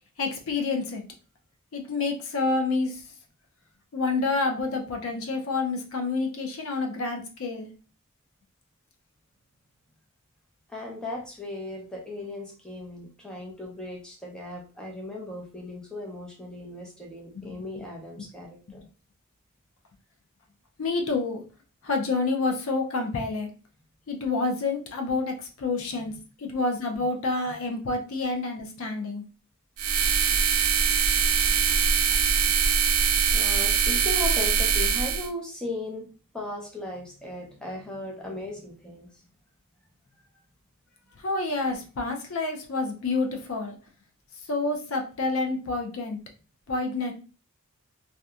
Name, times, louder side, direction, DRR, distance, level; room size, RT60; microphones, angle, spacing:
voice 1, 0.2-1.0 1.7-2.9 3.9-7.7 17.3-17.6 20.8-21.4 21.8-23.5 24.1-26.1 26.4-29.2 41.2-43.8 44.5-46.2 46.7-47.1, left 3 dB, 70° left, 3 dB, 0.5 m, -28 dB
voice 2, 10.7-18.8 26.0-26.2 33.3-36.1 36.3-39.1, left 2 dB, 5° left, -2 dB, 0.6 m, -37 dB
sound 1, 29.8-35.3, right 6 dB, 80° right, 0.4 m, -23 dB
2.8 x 2.2 x 2.3 m, 0.35 s
head